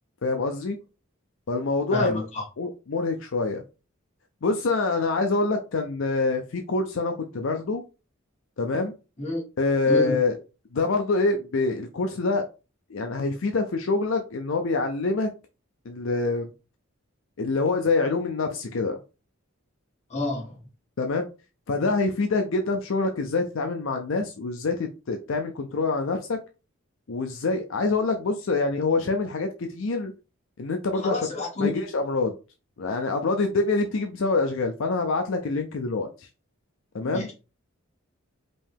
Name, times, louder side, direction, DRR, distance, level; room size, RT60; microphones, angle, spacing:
voice 1, 0.2-0.8 1.5-2.2 2.6-3.6 4.4-7.8 8.6-8.9 9.6-10.4 10.7-12.5 12.9-15.3 15.9-16.5 17.4-19.0 21.0-21.3 21.7-26.4 27.1-30.1 30.6-31.2 31.6-32.3 32.8-36.3 36.9-37.3, left 3 dB, 65° left, 0.5 m, -25 dB
voice 2, 1.9-2.4 9.2-9.4 9.9-10.2 20.1-20.6 30.9-31.7 37.0-37.3, left 2 dB, 30° left, 1.8 m, -29 dB
5.2 x 2.8 x 3.5 m
head